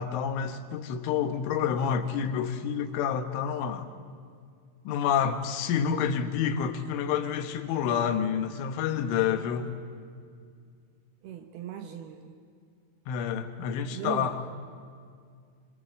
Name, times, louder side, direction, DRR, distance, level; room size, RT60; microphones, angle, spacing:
voice 1, 0.0-3.9 4.9-9.7 13.1-14.4, left 8 dB, 85° left, 8 dB, 3.8 m, -28 dB
voice 2, 11.2-12.4 13.9-14.4, right 10 dB, 70° right, 7 dB, 2.6 m, -38 dB
26.0 x 25.0 x 7.6 m, 2.2 s
omnidirectional pair, 5.5 m